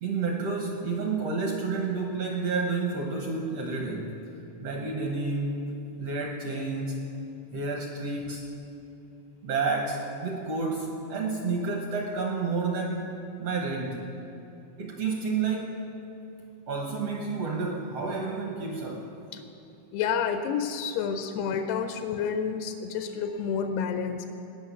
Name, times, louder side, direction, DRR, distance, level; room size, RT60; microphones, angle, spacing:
voice 1, 0.0-4.2 4.6-5.7 6.0-7.1 7.5-8.4 9.4-14.1 14.8-15.8 16.7-19.4, right 4 dB, 70° right, 1 dB, 1.5 m, -30 dB
voice 2, 19.9-24.3, left 7 dB, 90° left, 7 dB, 2.8 m, -29 dB
18.5 x 6.5 x 9.4 m, 2.7 s
omnidirectional pair, 4.5 m